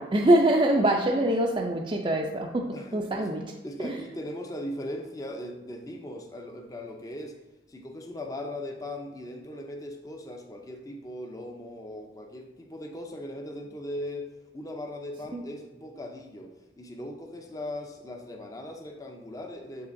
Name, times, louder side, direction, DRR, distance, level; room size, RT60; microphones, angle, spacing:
voice 1, 0.0-3.4 3.8-3.9 15.3-15.4, right 1 dB, 30° right, -1 dB, 0.4 m, -24 dB
voice 2, 2.7-3.3 3.6-7.3 7.7-19.9, left 1 dB, 20° left, 2 dB, 0.6 m, -39 dB
7.3 x 5.5 x 2.6 m, 1.0 s
head